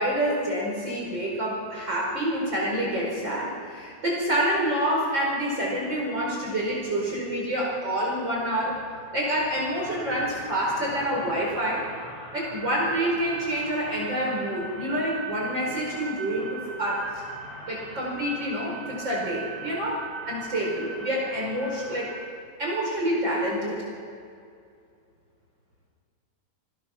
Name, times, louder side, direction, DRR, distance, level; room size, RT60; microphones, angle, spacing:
voice 1, 0.0-8.8 9.1-11.8 12.3-17.2 17.7-22.1 22.6-23.8, right 1 dB, 35° right, -3 dB, 5.5 m, -27 dB
sound 1, 8.6-22.2, right 3 dB, 15° right, 5.6 m, -41 dB
28.0 x 20.0 x 6.1 m, 2.3 s
omnidirectional pair, 3.7 m